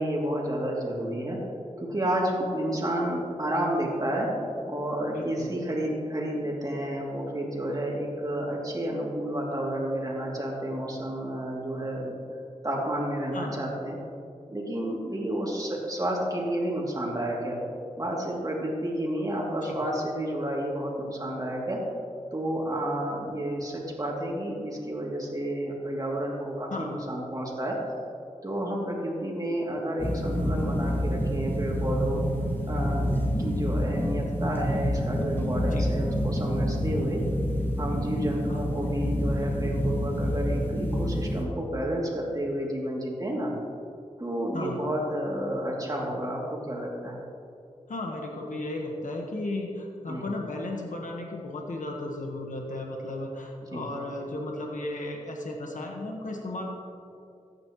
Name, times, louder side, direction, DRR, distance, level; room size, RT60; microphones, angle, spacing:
voice 1, 0.0-1.4 1.8-4.3 4.7-12.2 12.6-14.0 14.5-17.6 18.0-21.8 22.3-27.8 28.4-32.2 32.7-33.0 33.4-37.2 37.8-43.5 44.2-47.2 50.1-50.2 53.7-53.8, right 1 dB, 25° right, -3 dB, 2.7 m, -30 dB
voice 2, 5.1-5.5 13.3-13.6 19.7-19.8 26.7-27.0 35.7-35.9 38.5-38.6 44.5-44.8 47.9-56.7, left 2 dB, 75° left, 0 dB, 1.4 m, -35 dB
sound 1, 30.0-41.4, equal, 15° left, 1.9 m, -28 dB
14.0 x 9.6 x 3.1 m, 2.5 s
cardioid pair, 55°, 13 cm